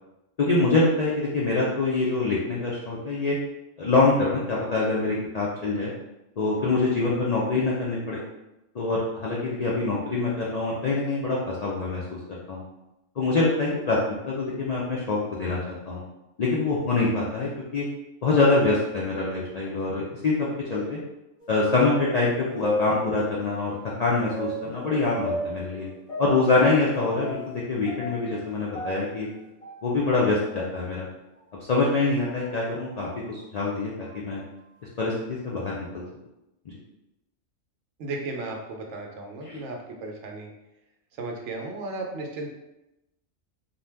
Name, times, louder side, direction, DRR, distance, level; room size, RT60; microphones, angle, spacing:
voice 1, 0.4-3.4 3.8-5.9 6.4-8.2 8.7-12.0 12.5-12.6 13.2-14.0 14.3-16.0 16.4-17.8 18.2-21.0 21.5-23.7 24.0-25.9 26.2-29.3 29.8-31.1 31.7-34.4 35.0-36.0 39.4-39.6, left 3 dB, 85° left, -5 dB, 0.3 m, -25 dB
sound 1, 21.4-23.6 24.3-27.6 27.9-30.2 30.5-30.6 31.4-31.5 32.2-32.4 33.1-33.2 34.0-34.3, left 1 dB, 35° left, 0.7 m, -34 dB
voice 2, 38.0-40.5 41.2-42.5, right 2 dB, 70° right, 1 dB, 0.9 m, -35 dB
2.6 x 2.2 x 3.3 m, 0.93 s
omnidirectional pair, 1.3 m